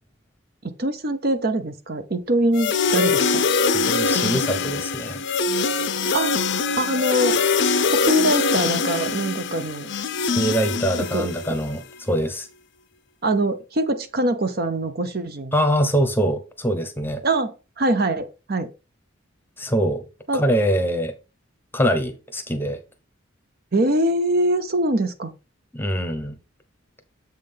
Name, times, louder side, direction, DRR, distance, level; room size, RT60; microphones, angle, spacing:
voice 1, 0.6-3.4 6.1-6.4 6.8-7.4 7.9-9.9 11.1-11.3 13.2-15.5 17.2-18.7 20.3-20.4 23.7-25.3, right 1 dB, 50° right, 0.8 m, -23 dB
sound 1, 2.5-11.7, left 4 dB, 55° left, 0.6 m, -23 dB
voice 2, 3.8-5.2 10.4-12.5 15.5-17.2 19.6-20.0 20.3-21.1 21.7-22.8 25.7-26.4, equal, 10° left, 0.9 m, -23 dB
7.5 x 3.8 x 5.1 m
head